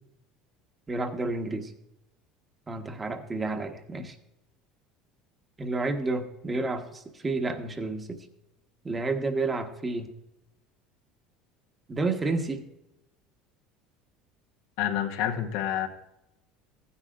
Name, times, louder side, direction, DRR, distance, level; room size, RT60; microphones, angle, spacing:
voice 1, 0.9-1.7 2.7-4.1 5.6-8.2 8.8-10.1 11.9-12.6, right 3 dB, 25° right, 7 dB, 1.3 m, -30 dB
voice 2, 14.8-15.9, left 10 dB, 75° left, 5 dB, 1.1 m, -28 dB
15.0 x 9.8 x 2.5 m, 0.85 s
hypercardioid pair, 85°, 0 cm